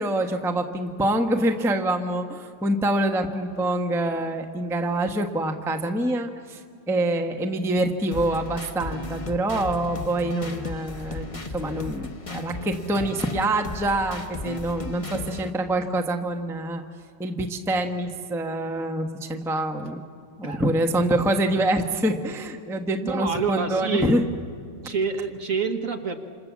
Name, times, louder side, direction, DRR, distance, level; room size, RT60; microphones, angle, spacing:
voice 1, 0.0-6.6 6.9-16.8 17.2-20.0 20.4-24.2, right 1 dB, ahead, 5 dB, 0.9 m, -25 dB
sound 1, 8.1-15.5, left 2 dB, 25° left, 0.9 m, -35 dB
voice 2, 20.4-20.8 23.0-24.3 24.8-26.1, right 4 dB, 45° right, 6 dB, 1.5 m, -27 dB
28.5 x 27.0 x 7.3 m, 2.3 s
omnidirectional pair, 2.1 m